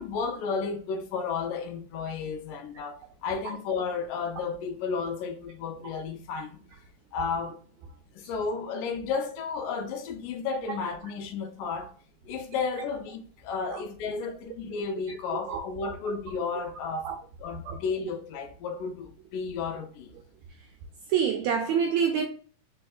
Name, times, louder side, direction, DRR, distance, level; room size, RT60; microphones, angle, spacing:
voice 1, 0.0-6.6 7.1-7.6 8.2-11.9 12.3-17.1 17.4-20.1, left 5 dB, 80° left, 2.3 m, -33 dB
voice 2, 21.1-22.2, right 7 dB, 85° right, 1.6 m, -26 dB
4.5 x 4.2 x 2.3 m
omnidirectional pair, 3.8 m